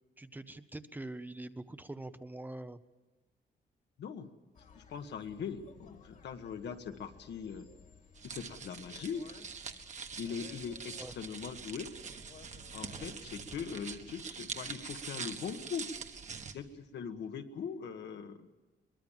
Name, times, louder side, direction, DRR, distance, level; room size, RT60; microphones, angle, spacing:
voice 1, 0.2-2.8 11.0-11.1, right 2 dB, 10° right, 11 dB, 0.7 m, -44 dB
voice 2, 4.0-4.3 4.7-7.7 8.2-9.2 10.2-11.9 12.7-15.9 16.5-18.5, left 6 dB, 75° left, 7 dB, 1.6 m, -41 dB
sound 1, 4.5-14.2, left 5 dB, 45° left, 2.0 m, -58 dB
sound 2, 8.2-16.5, right 6 dB, 40° right, 1.4 m, -44 dB
23.0 x 22.0 x 7.4 m, 1.2 s
wide cardioid pair, 165°, 18 cm